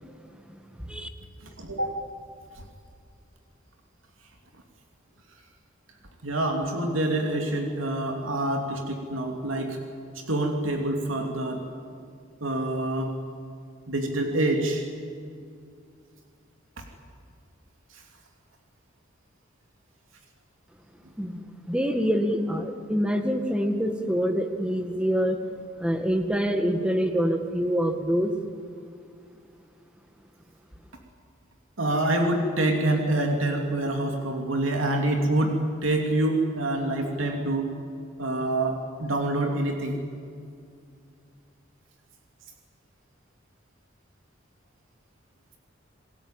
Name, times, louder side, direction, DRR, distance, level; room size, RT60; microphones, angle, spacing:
voice 1, 0.5-1.1 21.2-25.4 25.8-28.3, equal, 5° right, 6 dB, 1.8 m, -26 dB
voice 2, 1.4-1.9 6.2-9.8 10.1-11.6 12.4-13.2 13.9-14.8 16.8-16.9 17.9-18.0 31.8-37.7 38.2-40.0, right 1 dB, 90° right, 2 dB, 2.8 m, -26 dB
28.5 x 20.5 x 9.0 m, 2.3 s
head